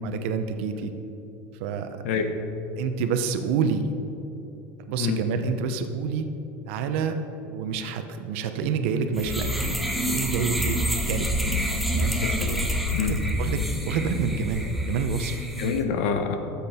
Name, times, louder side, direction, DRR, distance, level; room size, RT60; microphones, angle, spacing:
voice 1, 0.0-0.9 1.6-2.0 2.8-3.8 4.9-6.3 6.7-7.2 7.5-11.3 11.9-12.1 13.0-15.5, right 6 dB, 75° right, 7 dB, 0.9 m, -28 dB
sound 1, 9.1-15.8, equal, ahead, 0.8 m, -27 dB
voice 2, 12.2-12.6 12.9-13.2 15.6-16.4, left 6 dB, 85° left, 6 dB, 1.1 m, -27 dB
13.5 x 7.4 x 4.3 m, 3.0 s
cardioid pair, 150°, 7 cm